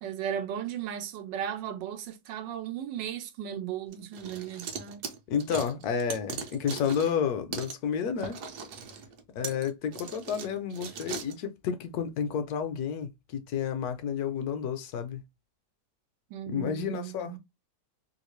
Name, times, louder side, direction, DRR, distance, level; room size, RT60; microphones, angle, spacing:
voice 1, 0.0-5.0 16.3-17.4, right 9 dB, 90° right, 1.3 m, -36 dB
sound 1, 3.9-7.2 7.5-7.8 8.2-11.4, right 6 dB, 70° right, 1.2 m, -39 dB
voice 2, 5.3-8.4 9.3-15.2 16.5-17.4, left 7 dB, 70° left, 1.0 m, -31 dB
3.1 x 2.5 x 3.0 m
omnidirectional pair, 1.9 m